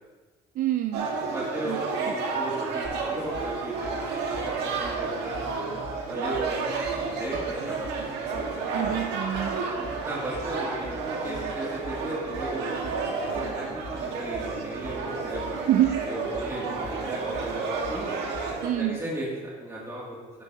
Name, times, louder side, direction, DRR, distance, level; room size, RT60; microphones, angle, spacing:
voice 1, 0.5-1.1 1.7-1.8 8.7-9.6 15.7-16.0 18.6-19.0, right 12 dB, 55° right, 8 dB, 0.5 m, -26 dB
sound 1, 0.9-18.7, right 4 dB, 90° right, 1.7 m, -31 dB
voice 2, 1.2-3.9 4.3-5.4 6.1-7.9 9.8-12.8 13.3-15.7 16.1-18.2 18.7-20.4, right 1 dB, 15° right, -6 dB, 2.5 m, -36 dB
sound 2, 2.8-18.7, left 2 dB, 40° left, 3.5 m, -44 dB
12.0 x 9.8 x 2.9 m, 1.4 s
cardioid pair, 110°, 17 cm